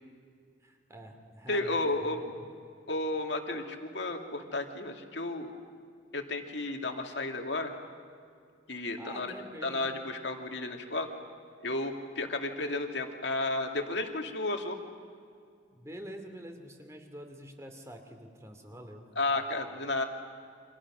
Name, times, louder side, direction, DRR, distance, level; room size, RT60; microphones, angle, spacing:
voice 1, 0.6-2.4 9.0-9.8 15.7-19.1, equal, 15° right, 5 dB, 2.7 m, -46 dB
voice 2, 1.5-2.2 2.9-5.5 6.1-7.7 8.7-9.3 9.6-11.1 11.6-14.8 19.2-20.0, left 2 dB, 65° left, 4 dB, 2.3 m, -32 dB
29.5 x 26.0 x 6.2 m, 2.2 s
head